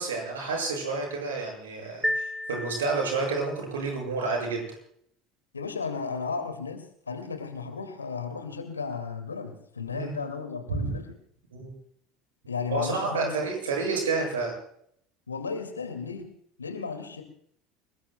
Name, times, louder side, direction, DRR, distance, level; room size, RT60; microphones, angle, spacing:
voice 1, 0.0-4.7 9.9-10.1 10.7-10.9 11.5-11.7 12.7-14.6, right 4 dB, 75° right, 1 dB, 6.8 m, -29 dB
sound 1, 2.0-3.5, left 1 dB, 5° left, 0.6 m, -32 dB
voice 2, 5.5-11.2 12.5-13.4 15.3-16.3 16.6-17.2, left 5 dB, 85° left, 7 dB, 2.2 m, -34 dB
29.5 x 19.5 x 2.3 m, 0.68 s
figure-of-eight pair, 70°, 0 cm